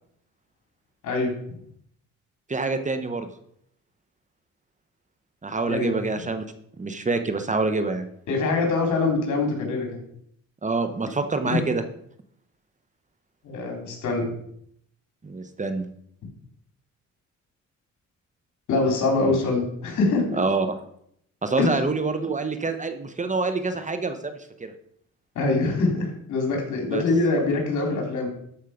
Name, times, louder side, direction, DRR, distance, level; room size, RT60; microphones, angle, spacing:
voice 1, 2.5-3.3 5.4-6.4 6.8-8.1 10.6-11.8 15.2-15.9 19.3-19.4 20.3-20.8 21.4-24.7 26.9-27.0, right 3 dB, 25° right, 9 dB, 1.1 m, -26 dB
voice 2, 8.3-9.9 11.5-11.6 13.4-14.3 18.7-20.4 21.6-21.8 25.4-28.3, left 3 dB, 75° left, 2 dB, 3.8 m, -24 dB
13.0 x 5.6 x 5.1 m, 0.70 s
cardioid pair, 90°, 30 cm